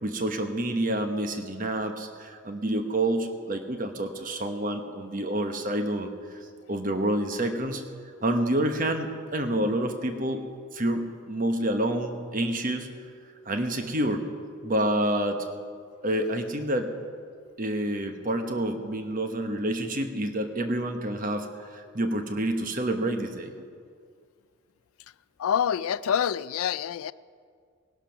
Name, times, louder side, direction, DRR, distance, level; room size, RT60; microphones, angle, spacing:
voice 1, 0.0-7.8 8.2-10.4 10.7-12.9 13.4-14.3 14.6-15.4 16.0-16.9 17.6-23.5, right 1 dB, 40° right, 6 dB, 1.2 m, -28 dB
voice 2, 25.4-27.1, left 8 dB, 85° left, 18 dB, 0.4 m, -26 dB
19.5 x 11.5 x 5.9 m, 2.1 s
head